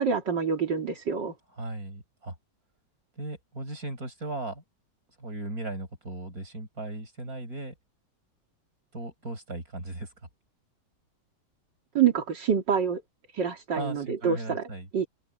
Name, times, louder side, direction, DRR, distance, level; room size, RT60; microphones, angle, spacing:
voice 1, 0.0-1.3 11.9-13.0 13.3-14.7 14.9-15.1, right 7 dB, 75° right, 3.1 m, -26 dB
voice 2, 1.6-2.3 3.1-4.6 5.2-7.7 8.9-10.1 13.7-14.9, right 2 dB, 50° right, 6.7 m, -37 dB
open air
omnidirectional pair, 2.0 m